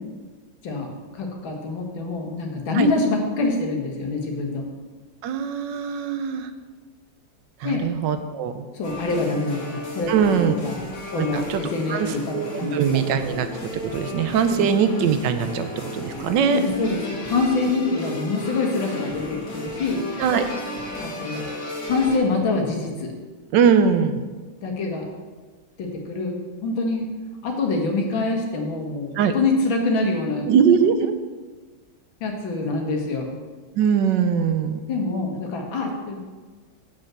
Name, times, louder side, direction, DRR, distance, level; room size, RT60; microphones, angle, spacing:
voice 1, 0.6-4.6 7.6-7.8 8.7-10.8 11.1-13.0 16.5-20.0 21.0-21.5 21.8-23.1 24.6-25.1 25.8-27.1 27.4-30.5 32.2-33.4 34.9-36.2, left 3 dB, 80° left, 1 dB, 2.2 m, -25 dB
voice 2, 5.2-6.5 7.6-8.7 10.1-10.5 11.2-11.6 11.9-16.6 20.2-20.4 23.5-24.2 29.1-29.3 30.5-31.1 33.7-34.8, right 7 dB, 70° right, 9 dB, 1.3 m, -21 dB
sound 1, 8.8-22.2, left 2 dB, 45° left, 2.2 m, -34 dB
7.5 x 5.5 x 7.4 m, 1.4 s
omnidirectional pair, 2.1 m